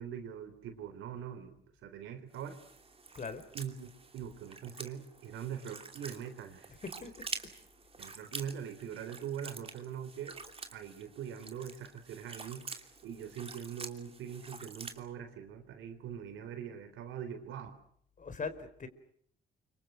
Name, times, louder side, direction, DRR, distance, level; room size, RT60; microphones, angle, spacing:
voice 1, 0.0-1.6 1.8-2.6 3.5-3.9 4.1-6.7 8.0-10.4 10.7-17.8, right 8 dB, 85° right, 9 dB, 4.1 m, -42 dB
sound 1, 2.3-15.0, right 4 dB, 30° right, 2.9 m, -47 dB
voice 2, 18.2-18.9, left 5 dB, 40° left, 11 dB, 4.6 m, -40 dB
29.0 x 25.5 x 6.3 m, 0.64 s
cardioid pair, 90°, 20 cm